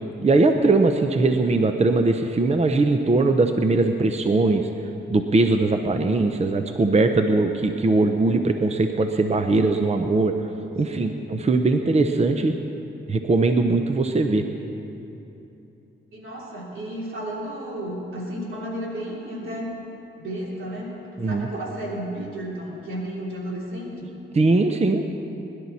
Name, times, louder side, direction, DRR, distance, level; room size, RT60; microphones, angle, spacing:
voice 1, 0.2-4.7 5.1-10.3 10.8-12.5 13.1-14.4 21.2-21.5 24.4-25.1, right 3 dB, 30° right, 6 dB, 0.7 m, -20 dB
voice 2, 10.9-11.3 16.1-19.7 20.2-21.0 21.2-24.1, right 1 dB, 80° right, -4 dB, 3.4 m, -33 dB
21.5 x 11.0 x 4.2 m, 2.8 s
cardioid pair, 85°, 21 cm